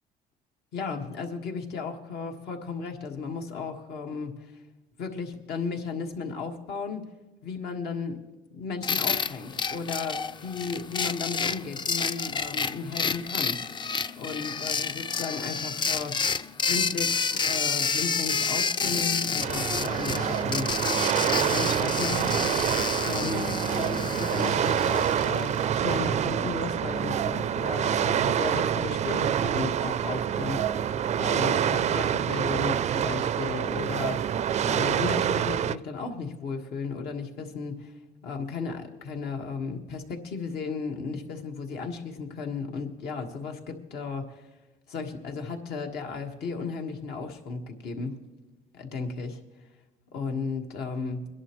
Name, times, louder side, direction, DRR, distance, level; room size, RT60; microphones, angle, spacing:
voice 1, 0.7-4.3 5.0-7.0 7.4-8.2 8.5-13.6 14.2-16.2 16.7-20.7 21.4-22.3 23.0-30.8 31.2-34.3 34.6-37.9 38.2-44.4 44.9-48.2 48.7-49.4 50.1-51.3, left 5 dB, 70° left, 3 dB, 1.6 m, -35 dB
sound 1, 8.8-25.8, left 5 dB, 25° left, 0.4 m, -30 dB
sound 2, 19.4-35.8, right 9 dB, 40° right, 0.4 m, -26 dB
22.5 x 11.0 x 3.1 m, 1.1 s
cardioid pair, 110°, 17 cm